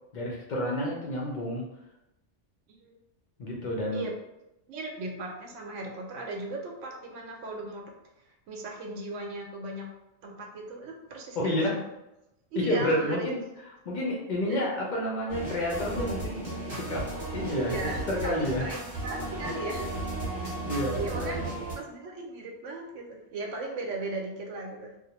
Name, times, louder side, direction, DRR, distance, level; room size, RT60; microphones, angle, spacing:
voice 1, 0.1-1.7 3.4-4.0 11.3-11.8 12.6-13.4 13.9-17.1 17.3-17.8 18.1-18.7 20.6-21.4, left 1 dB, 60° left, -2 dB, 0.5 m, -30 dB
voice 2, 4.7-7.8 8.2-9.9 10.2-11.8 12.5-13.3 14.5-14.6 17.6-20.0 20.4-20.5 21.0-21.4 21.8-24.9, right 2 dB, 85° right, 1 dB, 0.9 m, -37 dB
sound 1, 15.3-21.8, right 2 dB, 25° right, 0.9 m, -35 dB
2.5 x 2.0 x 2.8 m, 0.89 s
omnidirectional pair, 1.3 m